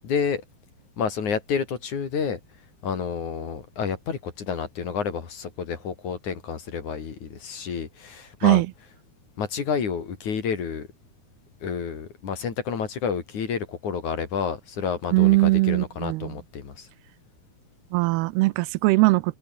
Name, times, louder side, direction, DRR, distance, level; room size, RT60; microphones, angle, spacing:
voice 1, 0.0-0.4 1.0-2.4 2.8-8.6 9.4-10.9 11.6-16.9, left 6 dB, 50° left, 4.1 m, -29 dB
voice 2, 15.1-16.3 17.9-19.4, right 21 dB, 85° right, 2.5 m, -20 dB
omnidirectional pair, 4.6 m